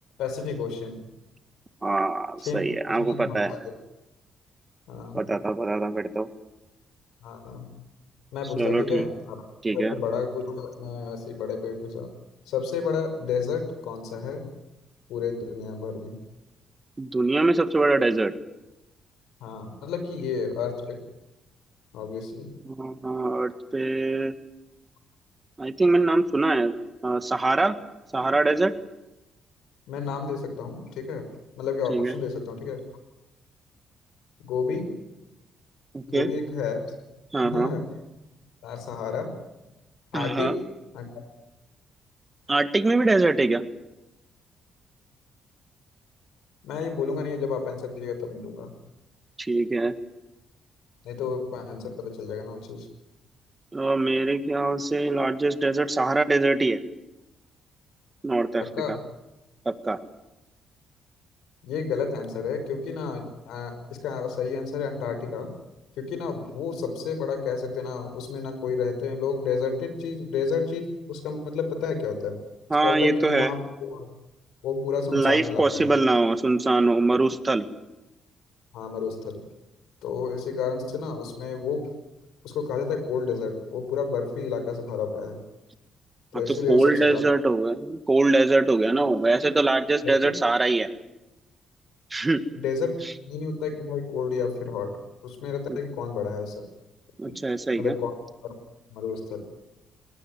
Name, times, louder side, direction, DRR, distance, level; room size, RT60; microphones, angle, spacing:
voice 1, 0.2-1.0 2.4-3.7 4.9-5.2 7.2-7.7 8.3-9.4 9.7-12.1 12.5-14.5 15.1-16.2 19.4-21.0 21.9-22.5 29.9-31.3 31.5-32.8 34.4-34.9 36.1-36.8 37.4-37.8 38.6-39.3 40.1-40.6 40.9-41.1 46.6-48.7 51.0-52.9 58.6-59.0 61.6-65.5 66.0-72.4 72.8-74.1 74.6-75.9 78.7-79.4 80.0-81.9 82.4-85.4 86.3-87.2 89.3-89.4 90.2-90.3 92.5-93.0 93.3-94.9 95.2-96.6 97.3-97.4 97.8-98.1 98.4-98.5 98.9-99.4, left 5 dB, 90° left, 9 dB, 5.6 m, -31 dB
voice 2, 1.8-3.5 5.1-6.3 8.6-9.1 9.6-9.9 17.0-18.3 22.7-24.3 25.6-26.7 27.0-27.8 28.1-28.7 31.9-32.1 35.9-36.3 37.3-37.7 40.1-40.5 42.5-43.6 49.4-49.9 53.7-56.8 58.2-59.0 59.7-60.0 72.7-73.5 75.1-77.7 86.5-90.9 92.1-92.4 95.7-95.8 97.2-97.9, right 2 dB, 20° right, 10 dB, 1.8 m, -23 dB
21.0 x 20.0 x 9.2 m, 0.96 s
cardioid pair, 90°, 0 cm